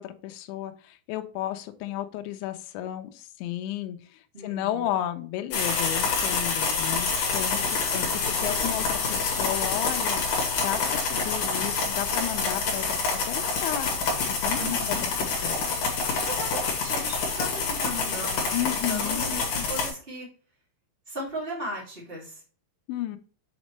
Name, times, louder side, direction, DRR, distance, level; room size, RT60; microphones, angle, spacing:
voice 1, 0.0-7.6 7.9-10.2 10.6-12.9 13.3-13.9 14.3-14.7 15.2-15.8 18.5-19.3 22.9-23.2, left 12 dB, 80° left, 7 dB, 2.8 m, -33 dB
voice 2, 4.3-4.9 7.5-8.4 14.6-15.0 16.2-20.3 21.1-22.4, equal, 55° right, -5 dB, 0.6 m, -37 dB
sound 1, 5.5-19.9, left 4 dB, 50° left, 2.8 m, -27 dB
8.2 x 4.2 x 3.2 m, 0.41 s
omnidirectional pair, 6.0 m